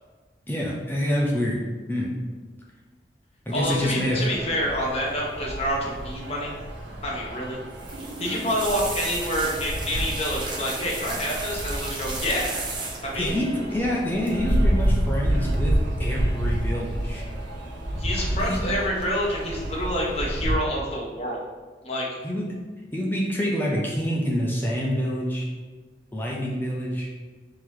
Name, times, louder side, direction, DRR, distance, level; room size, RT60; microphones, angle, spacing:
voice 1, 0.5-1.6 1.9-2.1 3.5-4.2 13.1-15.7 16.0-17.2 18.4-18.6 22.2-22.4 22.9-25.5 26.1-27.1, equal, 10° left, -3 dB, 0.6 m, -26 dB
voice 2, 3.5-6.5 7.0-7.6 8.2-12.6 13.0-13.4 18.0-21.4 21.8-22.1, equal, 35° left, -4 dB, 1.0 m, -27 dB
sound 1, 3.5-20.6, right 1 dB, 90° right, 1.2 m, -29 dB
sound 2, 7.7-13.3 14.2-14.6 14.8-15.1 16.3-16.9 17.2-17.8 18.2-18.6 19.0-19.1, right 3 dB, 25° right, 0.7 m, -35 dB
3.8 x 2.9 x 4.7 m, 1.4 s
head